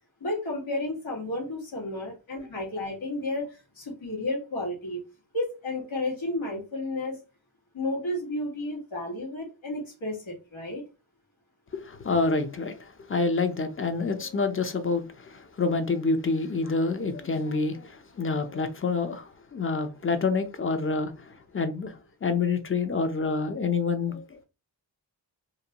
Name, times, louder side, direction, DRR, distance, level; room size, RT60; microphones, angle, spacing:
voice 1, 0.2-5.0 5.3-7.2 7.7-10.8, left 2 dB, 90° left, 1.4 m, -32 dB
voice 2, 11.7-24.4, left 4 dB, 30° left, 0.5 m, -28 dB
2.7 x 2.2 x 2.8 m
wide cardioid pair, 65°, 46 cm